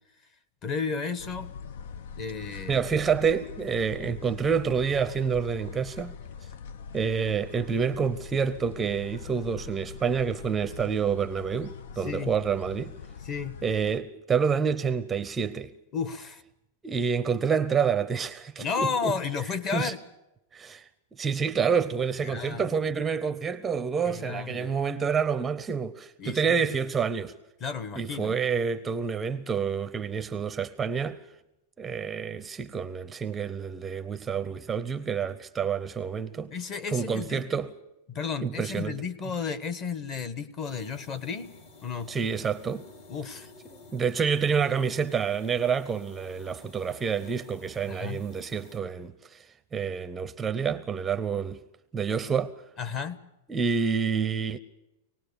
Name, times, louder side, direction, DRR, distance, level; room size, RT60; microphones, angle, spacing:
voice 1, 0.6-1.5 2.2-2.8 12.0-12.3 13.2-13.6 15.9-16.4 18.6-20.0 22.2-22.8 24.1-24.7 26.2-26.5 27.6-28.3 36.5-37.4 38.1-41.5 41.8-42.1 43.1-43.5 47.9-48.2 52.8-53.2, left 5 dB, 30° left, 1.3 m, -33 dB
sound 1, 1.2-14.0, left 6 dB, 70° left, 0.9 m, -43 dB
voice 2, 2.7-6.1 6.9-12.9 13.6-15.7 16.8-19.1 19.7-19.9 20.5-20.8 21.2-27.3 28.0-31.2 31.8-36.5 36.9-37.7 38.4-39.0 42.1-42.9 43.9-49.4 49.7-51.6 51.9-52.5 53.5-54.6, right 6 dB, 15° right, 0.7 m, -28 dB
sound 2, 40.6-48.8, left 3 dB, 55° left, 3.9 m, -51 dB
25.5 x 19.0 x 6.9 m
supercardioid pair, 160°, 0 cm